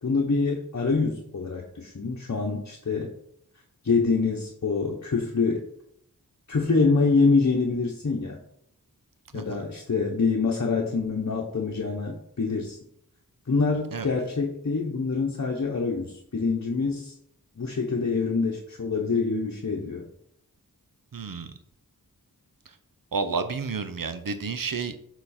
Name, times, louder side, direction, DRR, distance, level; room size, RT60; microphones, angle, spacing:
voice 1, 0.0-3.1 3.8-5.6 6.5-8.4 9.3-12.8 13.5-17.1 17.6-20.1, left 4 dB, 50° left, 0 dB, 0.9 m, -25 dB
voice 2, 9.3-9.6 13.9-14.1 21.1-21.5 23.1-25.2, right 4 dB, 65° right, 9 dB, 0.7 m, -31 dB
6.9 x 4.0 x 4.2 m, 0.72 s
wide cardioid pair, 60°, 36 cm